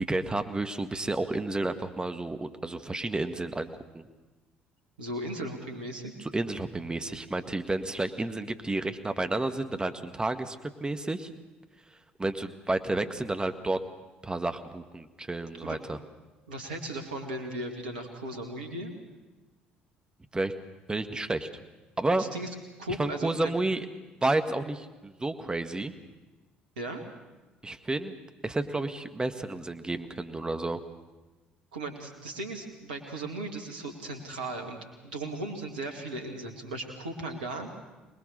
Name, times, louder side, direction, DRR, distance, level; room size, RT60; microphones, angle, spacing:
voice 1, 0.0-3.7 3.9-4.1 6.2-11.3 12.2-13.8 14.2-16.0 20.3-20.5 20.9-21.5 22.0-22.2 23.0-23.9 24.2-25.9 27.6-28.1 28.4-30.8, right 2 dB, 20° right, 8 dB, 1.8 m, -31 dB
voice 2, 5.0-6.1 15.6-15.8 16.5-19.0 22.1-22.5 22.8-23.5 26.8-27.0 31.7-34.8 35.0-37.7, right 1 dB, 80° right, 4 dB, 2.5 m, -37 dB
24.5 x 20.5 x 6.8 m, 1.2 s
figure-of-eight pair, 50°, 5 cm